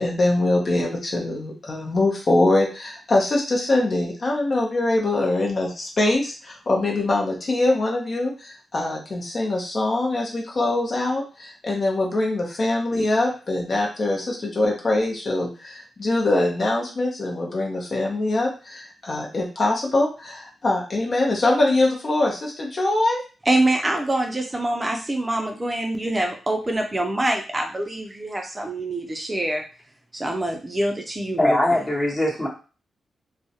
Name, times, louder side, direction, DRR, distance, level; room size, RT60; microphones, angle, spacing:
voice 1, 0.0-23.2, left 2 dB, 50° left, -1 dB, 0.7 m, -23 dB
voice 2, 23.5-29.6 30.1-31.8, right 1 dB, 25° right, 3 dB, 0.4 m, -25 dB
voice 3, 31.4-32.5, left 1 dB, 25° left, -3 dB, 1.0 m, -21 dB
2.2 x 2.0 x 2.7 m, 0.34 s
cardioid pair, 60°, 0 cm